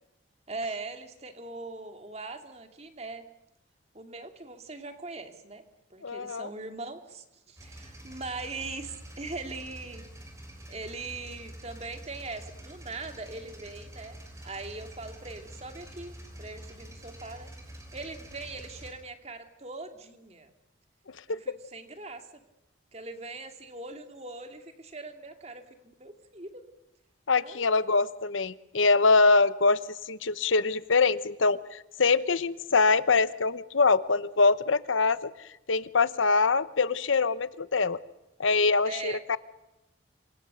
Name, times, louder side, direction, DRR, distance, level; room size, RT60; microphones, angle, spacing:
voice 1, 0.5-3.2 3.9-5.6 5.9-10.0 10.7-14.2 14.4-17.5 17.9-20.5 21.3-22.3 22.9-26.6 27.4-27.8 38.8-39.2, right 3 dB, 35° right, 6 dB, 2.3 m, -41 dB
voice 2, 6.0-6.5 21.3-21.4 27.3-29.8 30.1-35.3 35.7-38.0 38.4-39.4, left 4 dB, 85° left, 16 dB, 0.9 m, -24 dB
sound 1, 7.6-18.9, right 1 dB, 15° right, 5.2 m, -46 dB
27.5 x 24.5 x 6.7 m, 0.93 s
head